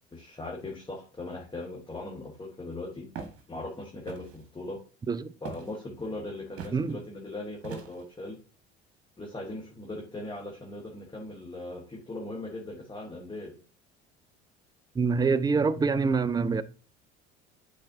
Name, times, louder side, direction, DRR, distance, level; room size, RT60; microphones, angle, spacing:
voice 1, 0.1-3.1 3.5-4.8 5.4-8.4 9.2-13.6, left 2 dB, 15° left, 1.5 m, -39 dB
Walk footsteps, 3.1-3.4 4.1-4.4 5.5-5.8 6.6-6.8 7.6-8.1, right 7 dB, 45° right, 1.6 m, -41 dB
voice 2, 14.9-16.6, right 4 dB, 10° right, 0.4 m, -25 dB
10.5 x 4.2 x 2.7 m
figure-of-eight pair, 60°, 33 cm